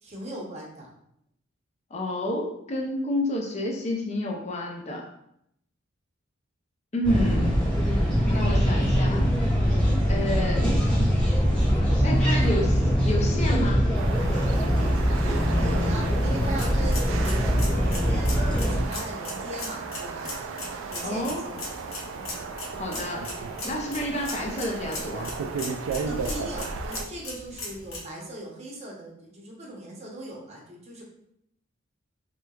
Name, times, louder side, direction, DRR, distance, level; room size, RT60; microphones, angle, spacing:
voice 1, 0.0-0.9 10.2-10.3 15.6-20.3 20.9-21.6 22.2-22.4 26.0-31.0, right 1 dB, 35° right, -2 dB, 0.7 m, -39 dB
voice 2, 1.9-5.1 6.9-7.6 8.2-9.2 10.1-10.7 11.0-11.1 12.0-13.9 21.0-21.4 22.8-23.3 23.6-25.3, left 1 dB, 35° left, 0 dB, 0.5 m, -29 dB
sound 1, 7.0-18.8, equal, 5° left, 1.0 m, -23 dB
sound 2, 13.9-27.1, right 5 dB, 75° right, 0.3 m, -35 dB
sound 3, 16.4-28.0, left 2 dB, 75° left, 1.0 m, -39 dB
3.2 x 2.9 x 2.3 m, 0.73 s
head